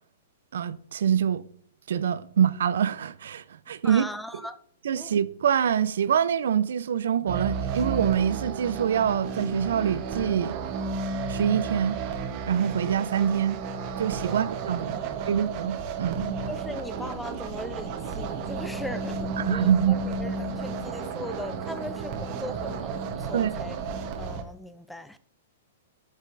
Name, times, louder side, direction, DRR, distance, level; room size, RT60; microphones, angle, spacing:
voice 1, 0.5-1.4 1.9-4.0 4.8-10.6 11.3-12.0 12.5-13.6 14.0-15.0 15.3-16.4 19.4-20.0 23.3-23.5, right 8 dB, 75° right, 0.4 m, -25 dB
voice 2, 3.8-4.6 5.0-5.1 14.2-14.4 14.9-15.4 16.5-23.7 24.2-25.2, left 1 dB, 5° left, 0.4 m, -39 dB
sound 1, 7.3-24.4, right 4 dB, 40° right, 0.9 m, -32 dB
8.2 x 6.4 x 2.6 m
hypercardioid pair, 145°, 0 cm